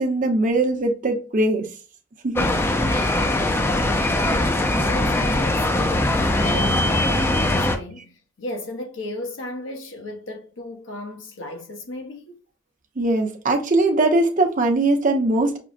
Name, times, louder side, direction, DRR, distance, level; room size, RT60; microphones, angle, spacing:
voice 1, 0.0-1.7 2.2-2.5 2.9-3.3 13.0-15.6, right 2 dB, 45° right, 0.7 m, -21 dB
sound 1, 2.4-7.8, left 1 dB, 10° left, 0.3 m, -21 dB
voice 2, 4.8-12.4, left 1 dB, 90° left, 0.8 m, -35 dB
5.9 x 2.0 x 2.5 m
head